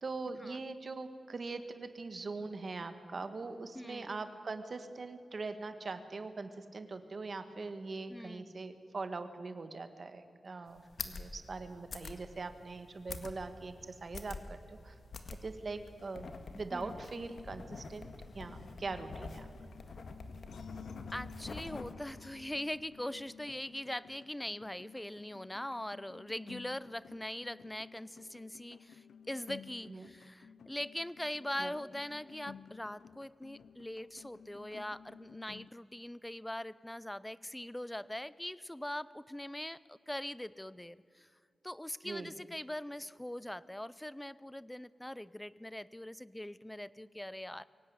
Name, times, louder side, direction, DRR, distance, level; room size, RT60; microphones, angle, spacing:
voice 1, 0.0-15.0 15.4-16.3 16.5-18.1 18.3-19.5 29.9-30.1 31.6-31.7 42.0-42.3, right 3 dB, 40° right, 9 dB, 1.6 m, -42 dB
voice 2, 3.7-4.1 8.1-8.5 16.7-17.0 21.1-41.3 41.6-47.6, left 1 dB, 5° left, 18 dB, 0.5 m, -42 dB
sound 1, 10.7-21.9, left 3 dB, 55° left, 1.8 m, -46 dB
sound 2, 17.1-35.7, left 7 dB, 90° left, 0.5 m, -54 dB
23.5 x 17.5 x 9.6 m, 2.3 s
wide cardioid pair, 165°, 0 cm